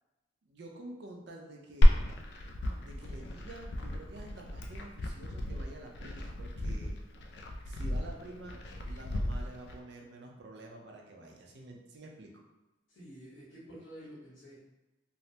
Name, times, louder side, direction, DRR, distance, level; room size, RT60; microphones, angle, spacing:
voice 1, 0.4-2.0 2.8-7.0 7.7-8.6 8.8-12.3, right 1 dB, 60° right, 1 dB, 0.5 m, -49 dB
Glass, 1.8-9.8, equal, 60° left, 0.3 m, -30 dB
voice 2, 12.9-14.6, equal, 75° left, -7 dB, 1.2 m, -49 dB
3.1 x 2.0 x 2.7 m, 1.1 s
head